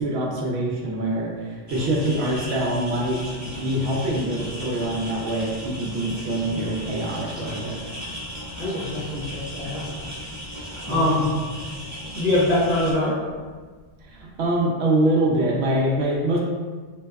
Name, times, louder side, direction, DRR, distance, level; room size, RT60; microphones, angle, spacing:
voice 1, 0.0-7.8 10.9-11.2 14.1-16.4, right 1 dB, 70° right, -2 dB, 0.8 m, -24 dB
sound 1, 1.7-12.9, equal, 25° right, 0.4 m, -36 dB
voice 2, 8.5-10.0 10.5-11.4 12.1-13.2, left 1 dB, 50° left, -8 dB, 0.5 m, -24 dB
2.7 x 2.1 x 2.2 m, 1.4 s
omnidirectional pair, 1.1 m